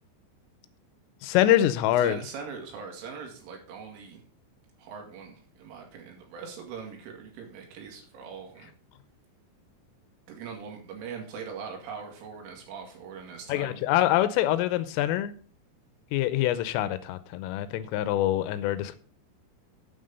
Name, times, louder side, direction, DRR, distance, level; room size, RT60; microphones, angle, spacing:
voice 1, 1.2-2.2 13.5-15.3 16.1-19.0, left 13 dB, 85° left, 14 dB, 3.3 m, -25 dB
voice 2, 2.0-4.2 4.8-8.7 10.3-13.9, right 6 dB, 75° right, 1 dB, 4.7 m, -41 dB
9.5 x 7.6 x 5.3 m, 0.40 s
omnidirectional pair, 5.9 m